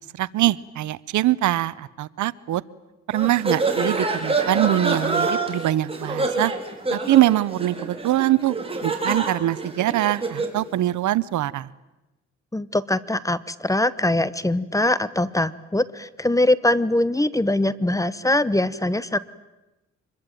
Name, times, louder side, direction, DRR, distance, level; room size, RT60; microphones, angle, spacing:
voice 1, 0.1-2.6 3.1-6.5 6.9-8.6 8.8-11.7, right 14 dB, 75° right, 20 dB, 0.8 m, -23 dB
sound 1, 3.1-10.6, right 3 dB, 20° right, 4.4 m, -26 dB
voice 2, 12.5-19.2, left 1 dB, 10° left, 17 dB, 1.0 m, -22 dB
25.5 x 21.5 x 9.1 m, 1.0 s
cardioid pair, 90°, 30 cm